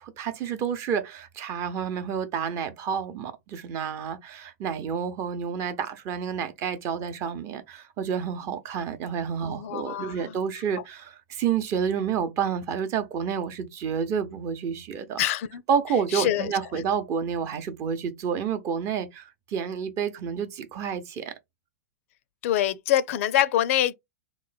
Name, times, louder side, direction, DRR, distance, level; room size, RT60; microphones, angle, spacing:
voice 1, 0.0-15.2 15.7-21.3, right 7 dB, 35° right, 0.7 m, -29 dB
voice 2, 9.4-10.3 15.2-15.6 16.1-16.5 22.4-23.9, left 12 dB, 60° left, 0.4 m, -25 dB
3.1 x 2.1 x 3.9 m
hypercardioid pair, 120°, 8 cm